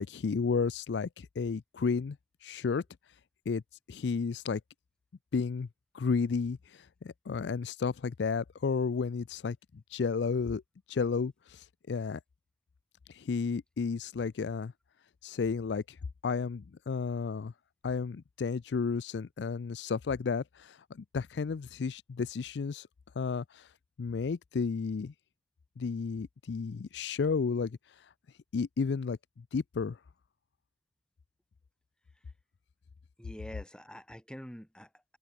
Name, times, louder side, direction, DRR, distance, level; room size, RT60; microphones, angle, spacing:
voice 1, 0.0-2.2 2.4-2.8 3.5-3.6 3.9-4.6 5.3-5.7 5.9-9.6 9.9-10.6 10.9-12.2 13.1-14.7 15.2-15.8 16.2-17.5 17.8-22.9 23.2-23.7 24.0-25.1 25.8-27.8 28.5-30.0, left 5 dB, 70° left, 0.4 m, -32 dB
voice 2, 33.2-35.2, equal, 5° left, 2.1 m, -46 dB
head